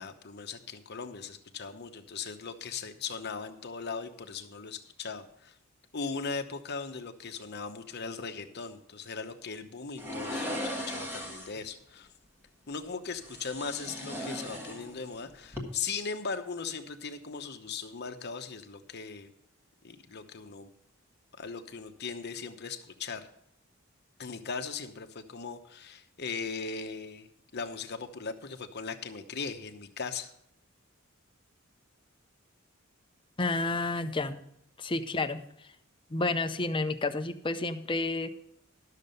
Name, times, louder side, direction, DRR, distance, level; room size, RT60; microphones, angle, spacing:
voice 1, 0.0-5.6 5.9-12.1 12.7-19.3 19.8-20.7 21.4-23.3 24.2-30.3, left 5 dB, 55° left, 7 dB, 0.9 m, -38 dB
sound 1, 10.0-11.6 13.2-15.2 15.4-15.6, left 1 dB, 10° right, 1.5 m, -37 dB
voice 2, 33.4-34.4 34.8-35.4 36.1-38.3, left 2 dB, 25° left, 8 dB, 0.6 m, -30 dB
12.5 x 6.6 x 5.3 m, 0.73 s
head